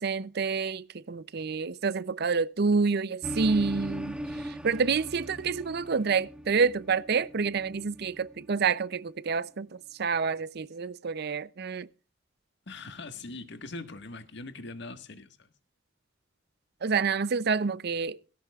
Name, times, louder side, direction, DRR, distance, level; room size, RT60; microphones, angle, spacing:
voice 1, 0.0-11.9 16.8-18.2, right 5 dB, 60° right, 0.6 m, -28 dB
sound 1, 3.2-8.8, right 1 dB, 5° right, 1.2 m, -39 dB
voice 2, 12.7-15.5, left 3 dB, 65° left, 1.7 m, -42 dB
17.5 x 17.0 x 2.4 m
head